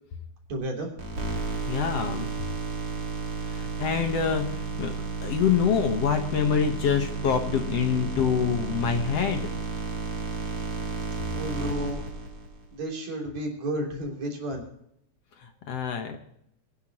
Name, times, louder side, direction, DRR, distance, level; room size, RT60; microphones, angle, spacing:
voice 1, 0.5-0.9 11.3-12.0 12.7-14.6, right 1 dB, 60° right, 1 dB, 4.6 m, -32 dB
sound 1, 1.0-12.6, right 3 dB, 45° right, 3.9 m, -32 dB
voice 2, 1.7-2.3 3.4-4.9 5.2-9.5 15.4-16.2, left 7 dB, 60° left, 5 dB, 2.2 m, -26 dB
23.5 x 10.5 x 3.0 m, 0.72 s
omnidirectional pair, 3.5 m